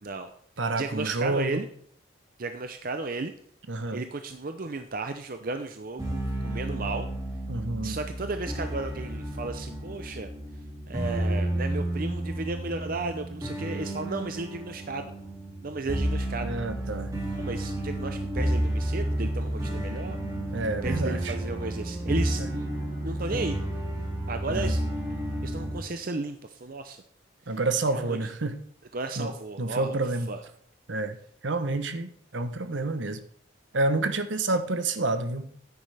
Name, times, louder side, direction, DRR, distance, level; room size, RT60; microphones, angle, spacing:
voice 1, 0.0-0.3 0.8-1.7 2.4-3.3 3.9-7.1 7.8-10.3 10.9-15.1 15.6-16.5 17.4-20.2 20.8-22.7 23.0-23.6 24.3-24.8 25.4-27.0 27.9-28.2 28.9-30.4, right 3 dB, 45° right, 7 dB, 0.6 m, -34 dB
voice 2, 0.6-1.6 3.7-4.0 7.5-8.0 10.1-10.2 16.4-17.1 20.5-21.4 22.4-22.5 24.5-24.8 27.5-28.6 29.2-29.3 29.6-30.3 30.9-31.2 31.4-33.2 33.7-35.5, right 2 dB, 65° right, 10 dB, 1.0 m, -29 dB
sound 1, 6.0-25.8, right 1 dB, 20° right, 2.3 m, -31 dB
9.8 x 9.5 x 3.4 m, 0.63 s
head